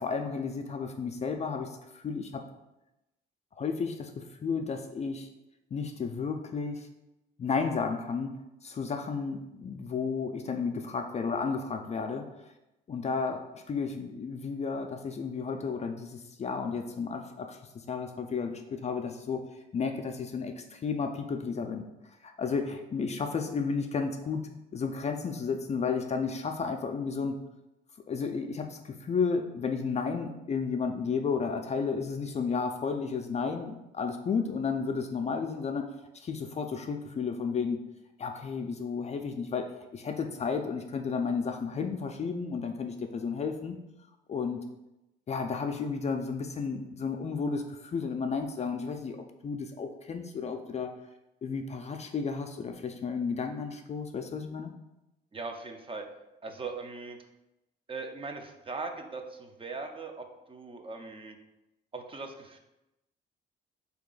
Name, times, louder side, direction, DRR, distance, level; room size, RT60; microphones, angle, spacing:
voice 1, 0.0-2.4 3.6-5.3 5.7-6.9 7.4-8.3 8.6-12.3 12.9-17.6 17.9-19.4 19.7-21.9 22.2-24.4 24.7-27.4 28.1-35.9 36.1-37.8 38.2-43.8 44.3-44.7 45.3-49.2 49.4-50.9 51.4-54.7, left 5 dB, 35° left, 5 dB, 0.3 m, -32 dB
voice 2, 55.3-56.1 56.4-57.2 57.9-61.4 61.9-62.6, right 3 dB, 25° right, 5 dB, 0.5 m, -40 dB
3.1 x 2.8 x 3.8 m, 0.94 s
cardioid pair, 90°, 20 cm